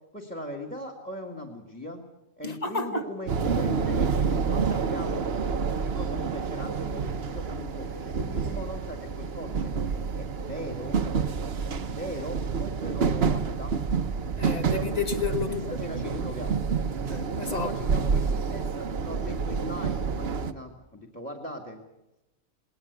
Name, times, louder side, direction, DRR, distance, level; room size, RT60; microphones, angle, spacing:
voice 1, 0.1-2.0 2.4-5.2 5.8-9.8 10.1-11.0 11.5-13.7 15.5-16.6 17.4-21.8, left 1 dB, 5° left, 2.0 m, -39 dB
voice 2, 2.4-3.0 14.4-16.3 17.1-17.7 18.0-18.1, left 4 dB, 30° left, 1.4 m, -32 dB
sound 1, 3.3-20.5, right 5 dB, 50° right, 1.1 m, -28 dB
20.0 x 18.5 x 8.1 m
omnidirectional pair, 1.5 m